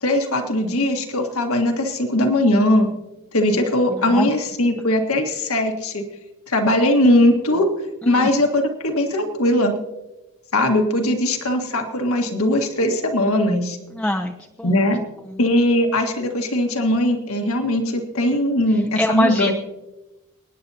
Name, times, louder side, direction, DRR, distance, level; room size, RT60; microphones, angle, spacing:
voice 1, 0.0-2.9 3.3-6.0 6.5-7.7 8.0-9.7 10.5-13.8 14.6-15.0 15.4-19.6, left 1 dB, 75° left, 4 dB, 1.7 m, -20 dB
voice 2, 3.9-4.3 8.0-8.3 13.9-14.9 15.3-15.4 18.9-19.6, left 1 dB, 5° left, 1 dB, 0.6 m, -24 dB
28.0 x 9.6 x 2.8 m, 1.0 s
head